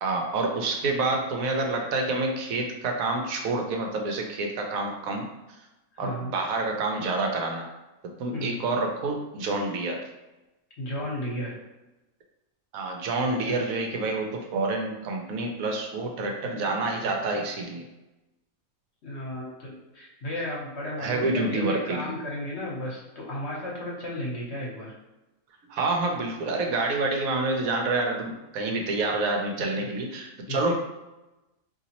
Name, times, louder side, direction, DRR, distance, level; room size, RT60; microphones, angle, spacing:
voice 1, 0.0-5.3 6.0-7.7 8.2-10.0 12.7-17.9 21.0-22.2 25.7-30.7, right 3 dB, 75° right, 2 dB, 1.0 m, -28 dB
voice 2, 6.0-6.3 8.3-8.5 10.8-11.6 13.5-13.6 19.0-24.9 29.7-29.9 30.5-30.7, left 1 dB, 50° left, -4 dB, 1.1 m, -34 dB
4.0 x 2.7 x 2.9 m, 1.0 s
omnidirectional pair, 1.5 m